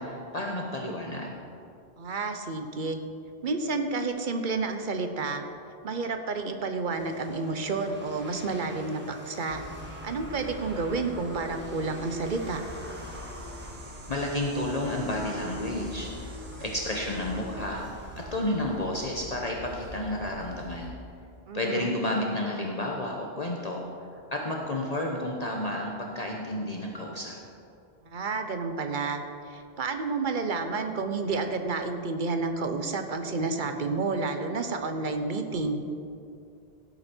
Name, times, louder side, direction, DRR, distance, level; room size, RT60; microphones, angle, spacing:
voice 1, 0.0-1.3 14.1-16.4 16.6-17.9 18.3-20.9 21.5-27.4, left 1 dB, 40° left, -1 dB, 1.1 m, -31 dB
voice 2, 2.0-3.0 3.4-5.4 5.8-9.0 9.3-9.6 10.0-12.6 21.5-21.9 28.1-29.2 29.5-35.8, right 3 dB, 50° right, 6 dB, 1.0 m, -30 dB
sound 1, 6.9-20.0, equal, 10° right, 1.7 m, -44 dB
sound 2, 9.5-20.9, left 1 dB, 75° right, 1.7 m, -44 dB
16.5 x 8.3 x 4.5 m, 2.5 s
omnidirectional pair, 1.1 m